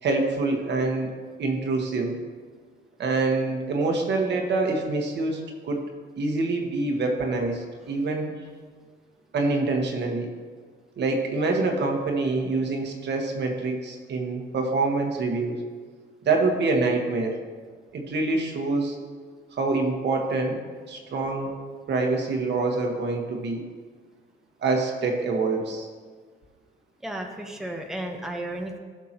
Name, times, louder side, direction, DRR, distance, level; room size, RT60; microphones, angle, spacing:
voice 1, 0.0-1.1 1.4-2.2 3.0-5.8 6.2-8.4 9.3-10.3 11.0-15.6 16.2-17.4 17.9-19.0 19.5-20.6 20.9-21.5 21.9-23.6 24.6-25.9, right 3 dB, 60° right, 2 dB, 1.4 m, -26 dB
voice 2, 27.0-28.8, right 1 dB, ahead, 2 dB, 0.9 m, -33 dB
15.0 x 6.1 x 2.9 m, 1.5 s
cardioid pair, 90°, 20 cm